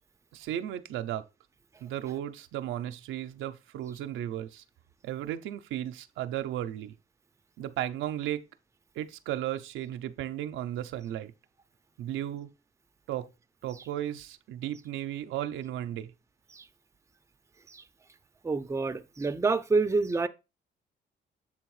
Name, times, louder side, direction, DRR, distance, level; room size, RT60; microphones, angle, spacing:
voice 1, 0.3-1.2 1.8-4.6 5.0-6.9 7.6-8.5 9.0-11.3 12.0-12.5 13.1-13.3 13.6-16.1, right 12 dB, 90° right, 0.6 m, -35 dB
voice 2, 18.4-20.3, right 3 dB, 15° right, 0.5 m, -27 dB
7.5 x 3.5 x 4.8 m
cardioid pair, 90°, 20 cm